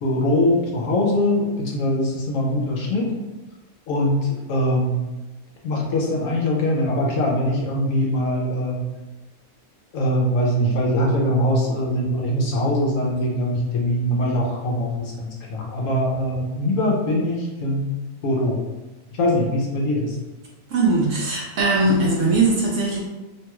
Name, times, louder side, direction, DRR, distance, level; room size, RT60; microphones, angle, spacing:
voice 1, 0.0-3.1 3.9-4.2 4.5-4.9 5.6-8.8 9.9-17.9 18.2-18.7 19.1-20.2, left 1 dB, 65° left, -2 dB, 1.0 m, -22 dB
voice 2, 20.7-23.0, right 2 dB, 65° right, -3 dB, 0.8 m, -20 dB
3.0 x 2.3 x 2.9 m, 1.1 s
omnidirectional pair, 1.6 m